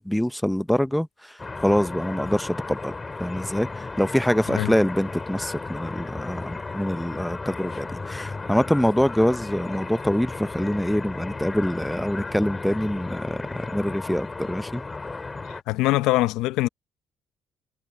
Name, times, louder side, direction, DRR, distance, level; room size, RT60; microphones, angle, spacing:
voice 1, 0.0-2.9 3.2-14.8, equal, 5° left, 0.7 m, -25 dB
sound 1, 1.4-15.6, left 3 dB, 25° left, 2.6 m, -34 dB
voice 2, 15.5-16.7, left 17 dB, 85° left, 0.7 m, -23 dB
supercardioid pair, 70°, 0 cm